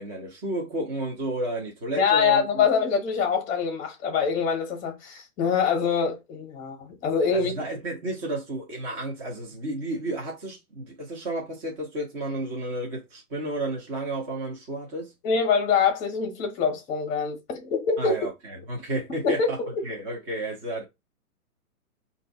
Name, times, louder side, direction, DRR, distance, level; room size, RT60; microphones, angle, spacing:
voice 1, 0.0-2.7 7.3-15.1 18.0-20.8, right 1 dB, 20° right, 0.8 m, -32 dB
voice 2, 2.0-7.5 15.2-18.3 19.2-19.7, left 6 dB, 20° left, 1.1 m, -24 dB
4.4 x 2.7 x 3.9 m
hypercardioid pair, 145°, 45 cm